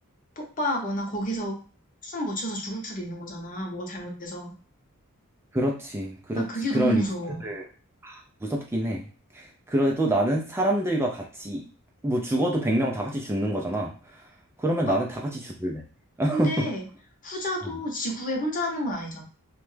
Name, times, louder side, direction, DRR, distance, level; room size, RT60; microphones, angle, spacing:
voice 1, 0.4-1.6 2.0-4.5 6.4-7.4 14.9-15.0 16.3-16.8 17.2-19.2, equal, 35° left, 1 dB, 0.8 m, -30 dB
voice 2, 5.5-7.0 7.4-7.7 8.0-9.1 9.3-11.6 12.0-13.9 14.6-15.8 16.2-16.7 17.6-17.8, right 1 dB, 10° right, -1 dB, 0.4 m, -26 dB
3.0 x 2.2 x 3.2 m, 0.40 s
head